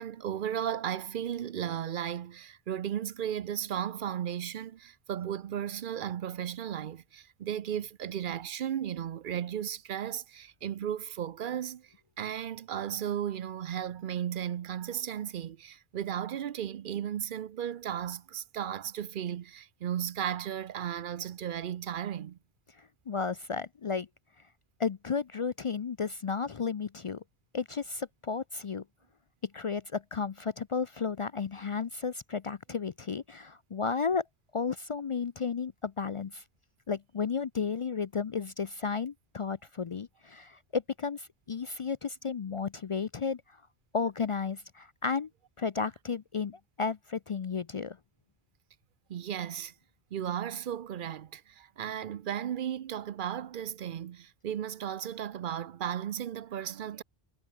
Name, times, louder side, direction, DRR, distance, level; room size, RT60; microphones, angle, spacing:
voice 1, 0.0-22.4 49.1-49.7 50.1-57.0, right 9 dB, 60° right, 0.7 m, -35 dB
voice 2, 22.8-24.1 24.8-27.2 27.5-28.8 29.4-34.2 34.5-36.4 36.9-43.6 43.9-45.3 45.6-48.0, left 5 dB, 50° left, 0.4 m, -33 dB
omnidirectional pair, 1.1 m